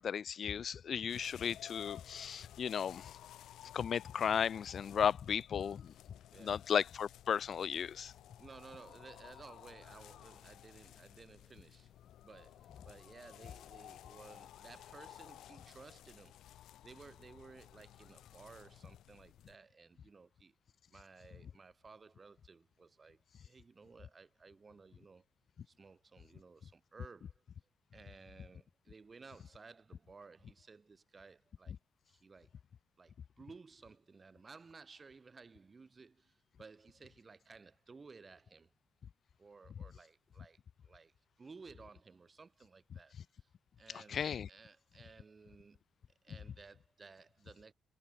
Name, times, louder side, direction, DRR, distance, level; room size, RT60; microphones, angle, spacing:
voice 1, 0.0-3.1 3.7-5.9 6.4-8.1 43.9-44.5, left 7 dB, 55° left, 0.3 m, -35 dB
sound 1, 1.1-19.6, left 12 dB, 80° left, 1.7 m, -56 dB
voice 2, 6.3-6.7 8.4-16.4 16.8-20.6 20.9-25.3 25.7-27.4 27.9-31.8 32.1-32.6 33.0-38.7 39.4-40.6 40.8-41.1 41.4-43.5 43.8-45.8 46.2-47.7, right 4 dB, 30° right, 2.0 m, -57 dB
cardioid pair, 90°, 0 cm